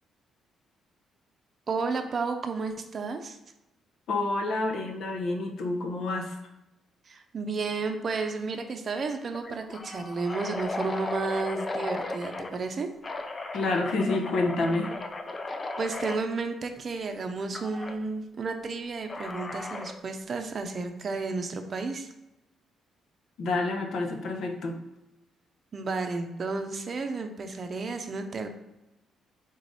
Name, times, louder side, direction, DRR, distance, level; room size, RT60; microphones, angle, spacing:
voice 1, 1.7-3.4 7.1-12.9 15.8-22.1 25.7-28.5, right 4 dB, 45° right, 5 dB, 0.6 m, -32 dB
voice 2, 4.1-6.4 13.5-14.9 23.4-24.8, left 2 dB, 70° left, 2 dB, 0.8 m, -28 dB
sound 1, 8.1-8.4 8.7-8.8 9.3-12.6 13.0-16.2 17.5-18.0 19.1-20.0, left 2 dB, 30° left, 0.5 m, -36 dB
3.7 x 3.2 x 4.0 m, 0.95 s
cardioid pair, 90°, 0 cm